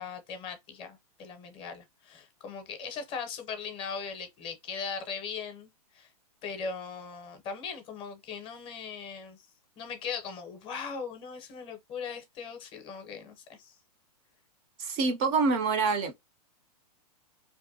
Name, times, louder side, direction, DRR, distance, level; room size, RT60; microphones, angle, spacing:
voice 1, 0.0-6.1 6.4-9.4 9.8-13.8, left 5 dB, 25° left, 0.6 m, -39 dB
voice 2, 14.8-16.1, right 4 dB, 35° right, 0.4 m, -26 dB
2.6 x 2.1 x 2.6 m
hypercardioid pair, 135°, 20 cm